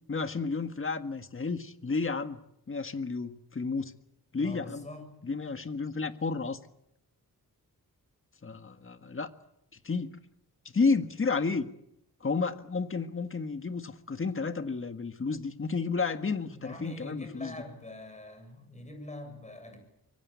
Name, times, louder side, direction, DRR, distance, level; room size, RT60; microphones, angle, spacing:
voice 1, 0.1-2.4 2.7-3.9 4.3-4.9 5.2-6.6 8.4-9.3 9.8-10.2 10.7-11.7 12.2-17.5, left 4 dB, 35° left, 9 dB, 1.7 m, -31 dB
voice 2, 4.4-5.1 16.5-19.8, left 2 dB, 20° left, 7 dB, 7.4 m, -44 dB
24.5 x 23.5 x 8.4 m, 0.79 s
wide cardioid pair, 120°, 36 cm